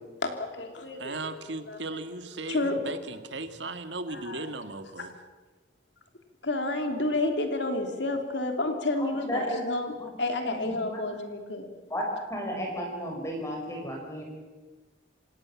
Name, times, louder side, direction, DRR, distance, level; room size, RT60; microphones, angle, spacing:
voice 1, 0.2-1.4 1.7-2.0 2.5-2.8 4.1-4.5 5.0-5.1 6.4-11.7, left 2 dB, 70° left, 5 dB, 3.2 m, -30 dB
voice 2, 1.0-5.1, right 2 dB, 70° right, 8 dB, 1.8 m, -37 dB
voice 3, 9.0-9.6 10.4-11.1 11.9-12.0 12.3-14.2, equal, 15° left, 0 dB, 5.2 m, -34 dB
28.0 x 17.0 x 7.3 m, 1.3 s
head